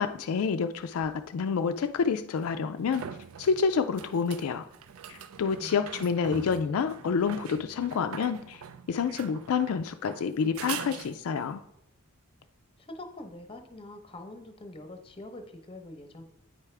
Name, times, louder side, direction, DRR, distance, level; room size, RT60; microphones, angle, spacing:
voice 1, 0.0-3.0 3.4-4.7 5.1-8.6 8.9-11.6, left 6 dB, 75° left, 8 dB, 0.4 m, -28 dB
sound 1, 1.0-1.1 2.4-11.5 15.0-15.1, right 8 dB, 70° right, 0.4 m, -43 dB
voice 2, 12.8-16.2, left 1 dB, 25° left, 6 dB, 0.7 m, -44 dB
8.7 x 4.8 x 3.3 m, 0.79 s
head